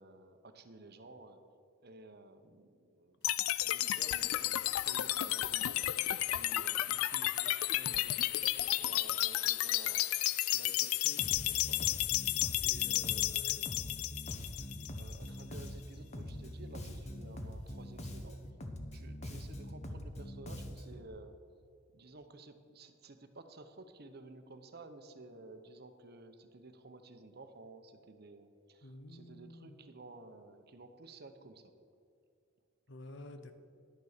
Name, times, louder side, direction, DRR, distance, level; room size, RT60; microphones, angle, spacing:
voice 1, 0.0-1.4 1.8-5.9 6.3-12.2 12.6-14.6 14.9-18.4 18.9-21.4 21.9-31.7, right 2 dB, 50° right, 8 dB, 0.8 m, -54 dB
sound 1, 3.2-15.3, left 15 dB, 85° left, 0.4 m, -32 dB
Bass guitar, 11.2-21.1, left 1 dB, 30° left, 0.9 m, -44 dB
voice 2, 12.8-13.1 19.3-19.6 28.8-29.8 32.9-33.5, left 1 dB, 60° left, 9 dB, 0.8 m, -50 dB
11.0 x 6.9 x 6.6 m, 2.4 s
head